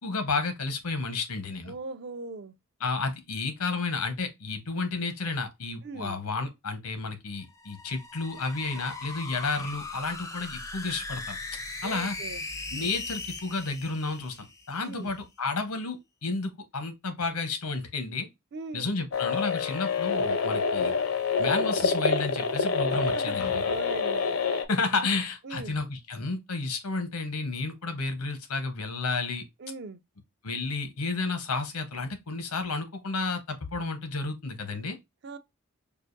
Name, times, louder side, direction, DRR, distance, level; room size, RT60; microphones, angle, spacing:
voice 1, 0.0-1.7 2.8-11.4 11.8-12.2 12.7-18.3 18.7-20.9 21.4-23.7 24.7-29.4 30.4-35.0, left 3 dB, 90° left, 0.9 m, -31 dB
voice 2, 1.7-2.5 5.8-6.2 11.8-12.4 14.8-15.1 18.5-18.9 22.9-24.3 25.4-25.8 29.6-30.0 35.2-35.4, right 3 dB, 50° right, 0.4 m, -40 dB
sound 1, 7.4-14.9, left 3 dB, 15° left, 0.4 m, -39 dB
sound 2, 19.1-24.6, left 5 dB, 70° left, 0.6 m, -27 dB
4.8 x 2.5 x 2.5 m
head